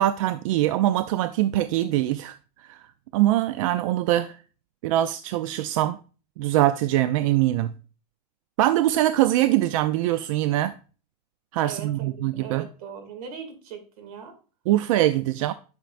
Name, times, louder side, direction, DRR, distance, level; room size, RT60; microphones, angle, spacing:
voice 1, 0.0-2.3 2.7-2.8 3.1-4.4 4.8-6.0 6.4-7.7 8.6-10.7 11.5-12.6 14.7-15.5, right 14 dB, 60° right, 0.4 m, -23 dB
voice 2, 11.6-14.4, right 7 dB, 85° right, 2.3 m, -40 dB
10.5 x 5.9 x 2.5 m
supercardioid pair, 175°, 19 cm